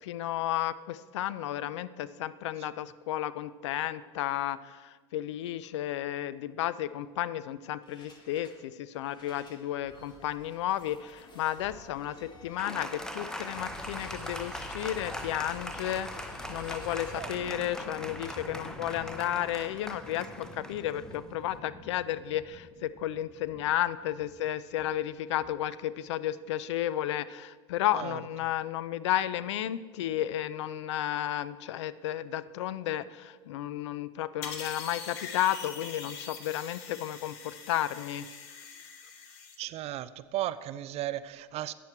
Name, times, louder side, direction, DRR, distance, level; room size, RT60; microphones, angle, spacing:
voice 1, 0.0-38.3, left 12 dB, 85° left, 16 dB, 0.4 m, -33 dB
sound 1, 7.8-8.6 8.9-25.9, left 2 dB, 30° left, 1.7 m, -49 dB
Applause, 12.6-21.6, left 1 dB, 5° left, 0.7 m, -41 dB
sound 2, 34.4-39.6, left 5 dB, 70° left, 1.3 m, -43 dB
voice 2, 39.6-41.7, right 13 dB, 45° right, 15 dB, 0.4 m, -35 dB
9.2 x 7.3 x 4.4 m, 1.4 s
supercardioid pair, 100°, 15 cm